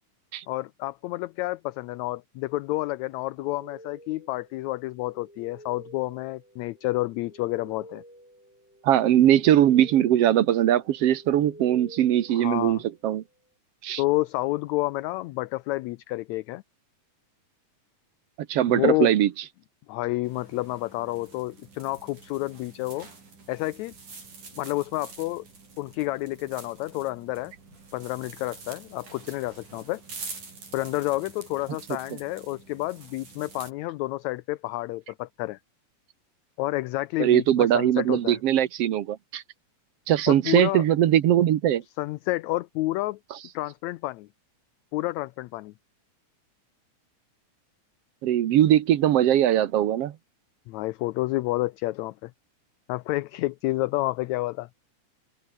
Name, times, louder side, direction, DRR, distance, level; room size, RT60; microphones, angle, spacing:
voice 1, 0.5-8.0 12.3-12.8 14.0-16.6 18.7-19.1 19.9-23.1 23.5-23.9 24.6-25.5 25.8-27.5 27.9-30.0 30.7-35.6 36.6-38.4 40.3-40.8 42.0-43.2 43.5-44.3 44.9-45.7 50.7-52.3 52.9-54.7, left 18 dB, 75° left, 1.8 m, -29 dB
sound 1, 3.4-13.1, equal, 5° right, 5.4 m, -49 dB
voice 2, 8.8-13.2 13.8-14.0 18.5-19.3 37.2-39.4 40.1-41.8 48.2-50.1, right 11 dB, 60° right, 1.9 m, -21 dB
sound 2, 20.2-33.7, right 4 dB, 85° right, 8.1 m, -46 dB
omnidirectional pair, 3.5 m